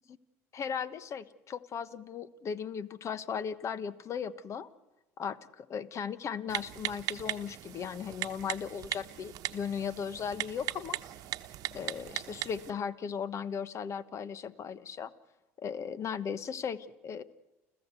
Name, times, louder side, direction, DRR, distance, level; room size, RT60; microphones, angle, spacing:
voice 1, 0.5-4.7 5.2-11.0 11.7-15.1 15.6-17.2, left 7 dB, 40° left, 16 dB, 1.2 m, -37 dB
Typing, 6.5-12.7, right 14 dB, 55° right, 1.1 m, -39 dB
30.0 x 15.0 x 8.2 m, 1.1 s
supercardioid pair, 90°, 7 cm